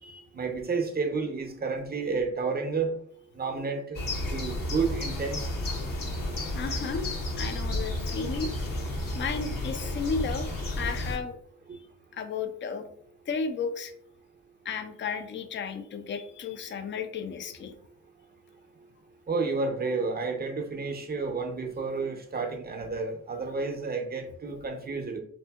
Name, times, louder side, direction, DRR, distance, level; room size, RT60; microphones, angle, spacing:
voice 1, 0.0-2.9 3.3-4.0 4.3-5.5 19.3-25.2, right 4 dB, 25° right, 4 dB, 0.6 m, -31 dB
sound 1, 3.9-11.2, left 1 dB, 60° left, 0.8 m, -32 dB
voice 2, 6.5-8.5 9.2-11.4 12.1-12.9 13.3-13.9 14.6-17.7, left 5 dB, 30° left, 7 dB, 0.4 m, -33 dB
2.7 x 2.7 x 2.3 m, 0.66 s
supercardioid pair, 40°, 38 cm